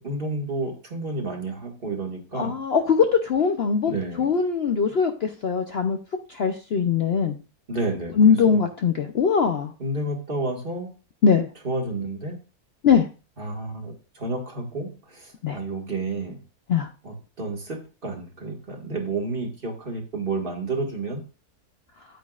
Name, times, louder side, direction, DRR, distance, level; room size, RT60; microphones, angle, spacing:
voice 1, 0.0-2.6 3.9-4.3 7.7-8.6 9.8-10.9 11.6-12.4 13.4-16.4 17.0-21.2, right 2 dB, 35° right, 2 dB, 1.9 m, -30 dB
voice 2, 2.3-3.9 4.2-6.0 6.3-7.4 8.2-9.7 11.2-11.5 12.8-13.1 15.4-15.6 16.7-16.9, left 6 dB, 55° left, 5 dB, 0.8 m, -21 dB
9.4 x 9.0 x 2.4 m, 0.33 s
omnidirectional pair, 1.6 m